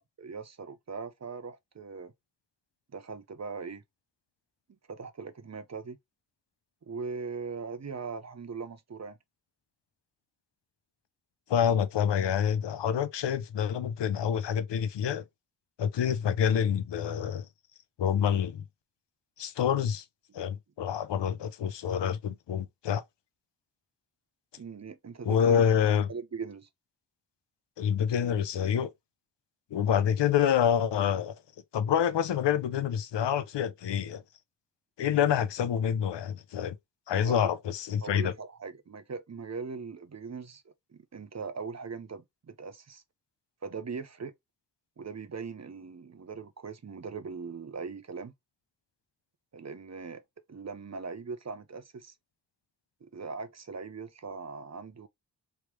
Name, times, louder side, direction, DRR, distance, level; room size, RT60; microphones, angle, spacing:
voice 1, 0.0-2.1 2.9-3.8 4.9-6.0 6.9-9.2 24.6-25.6 26.1-26.7 37.2-37.5 38.0-43.0 43.6-44.3 45.0-48.3 49.5-50.2 50.5-52.1 53.0-55.1, right 5 dB, 40° right, 0.7 m, -40 dB
voice 2, 11.5-15.2 15.8-17.5 18.0-18.6 19.4-20.0 20.3-23.0 25.2-26.1 27.8-28.9 29.7-31.4 31.7-34.2 35.0-36.8 37.1-38.3, left 8 dB, 90° left, 0.6 m, -27 dB
3.3 x 3.0 x 3.0 m
wide cardioid pair, 65°, 41 cm